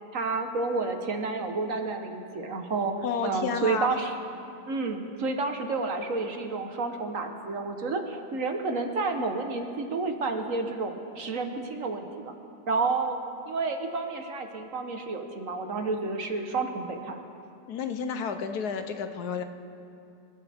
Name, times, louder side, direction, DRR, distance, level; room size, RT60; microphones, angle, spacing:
voice 1, 0.1-2.9 3.2-4.2 4.7-12.3 12.7-13.2 13.5-17.2, right 3 dB, 55° right, 5 dB, 1.5 m, -30 dB
voice 2, 3.0-3.9 17.7-19.4, left 6 dB, 85° left, 8 dB, 1.4 m, -31 dB
27.5 x 13.0 x 3.5 m, 2.6 s
omnidirectional pair, 1.7 m